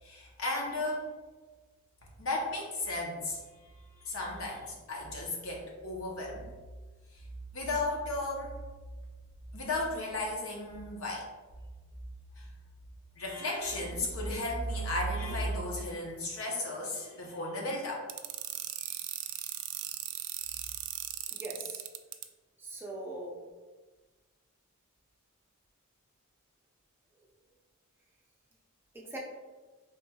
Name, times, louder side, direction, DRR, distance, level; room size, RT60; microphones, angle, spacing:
voice 1, 0.0-1.1 2.2-6.5 7.1-7.3 7.5-8.6 9.5-11.3 12.3-12.5 13.2-18.1 18.8-19.0, left 1 dB, 65° left, -2 dB, 0.8 m, -35 dB
sound 1, 18.1-22.2, right 13 dB, 75° right, 0.3 m, -37 dB
voice 2, 21.3-21.9 22.6-23.4 28.9-29.2, right 2 dB, 10° right, -3 dB, 0.6 m, -41 dB
4.3 x 3.1 x 2.3 m, 1.3 s
head